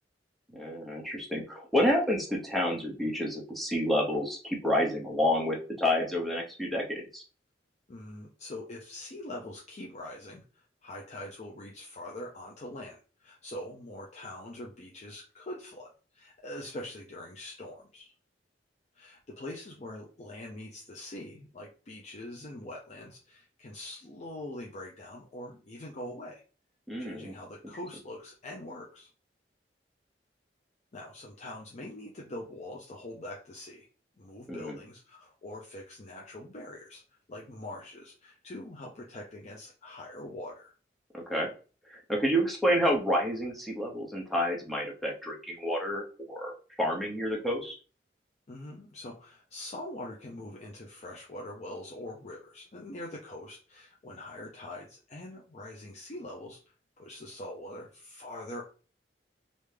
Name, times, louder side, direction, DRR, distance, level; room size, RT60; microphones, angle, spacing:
voice 1, 0.5-7.2 26.9-27.3 34.5-34.8 41.1-41.5 41.9-46.5 46.8-47.8, equal, ahead, -2 dB, 0.8 m, -29 dB
voice 2, 7.9-18.1 18.9-26.4 27.0-29.1 30.9-33.9 34.2-37.0 37.3-40.7 48.5-56.6 57.0-58.6, left 1 dB, 40° left, -2 dB, 0.6 m, -43 dB
3.3 x 2.7 x 3.2 m, 0.37 s
head